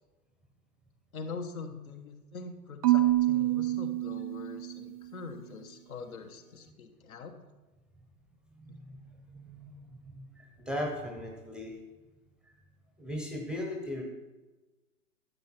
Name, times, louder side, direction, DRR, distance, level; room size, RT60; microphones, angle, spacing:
voice 1, 1.1-7.3, left 4 dB, 65° left, 6 dB, 1.5 m, -43 dB
Marimba xylophone / Wood, 2.8-5.0, right 16 dB, 25° right, 0.4 m, -27 dB
voice 2, 8.5-11.8 13.0-14.0, left 1 dB, ahead, 1 dB, 0.8 m, -38 dB
11.5 x 8.0 x 4.4 m, 1.2 s
figure-of-eight pair, 120°, 45 cm